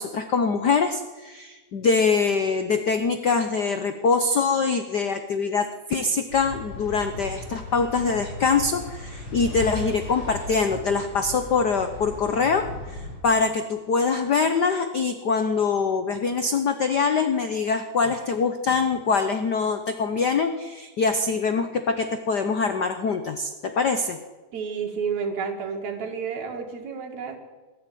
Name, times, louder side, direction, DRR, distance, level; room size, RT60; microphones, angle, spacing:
voice 1, 0.0-24.2, left 4 dB, 80° left, 8 dB, 0.9 m, -24 dB
sound 1, 6.3-13.2, left 2 dB, 40° left, 6.8 m, -37 dB
voice 2, 24.5-27.4, right 6 dB, 70° right, 3 dB, 3.5 m, -30 dB
21.0 x 13.5 x 9.3 m, 1.3 s
omnidirectional pair, 3.3 m